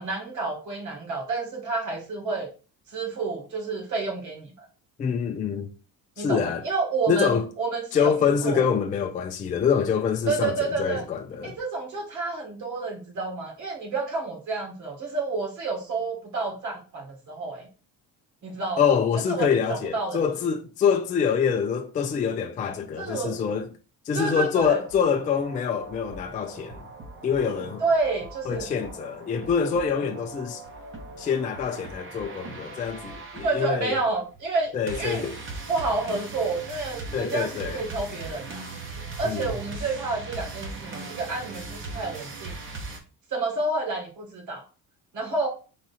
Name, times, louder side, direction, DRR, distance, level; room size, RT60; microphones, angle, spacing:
voice 1, 0.0-2.5 2.9-4.7 6.2-8.7 10.3-11.0 11.4-17.7 18.4-18.8 19.3-20.2 23.0-23.4 24.1-24.8 27.8-28.7 33.4-34.7 35.0-35.3 35.7-42.6 43.3-44.6 45.1-45.5, right 3 dB, 50° right, 1.7 m, -29 dB
voice 2, 5.0-5.7 6.2-6.6 7.1-7.5 7.9-11.6 18.8-23.7 24.1-26.8 27.2-27.8 28.5-30.6 31.2-34.0 34.7-35.4 37.1-37.8 39.2-39.5, left 7 dB, 20° left, 0.3 m, -25 dB
sound 1, 24.2-43.0, right 3 dB, 35° right, 0.9 m, -39 dB
3.7 x 2.9 x 4.1 m
cardioid pair, 130°, 37 cm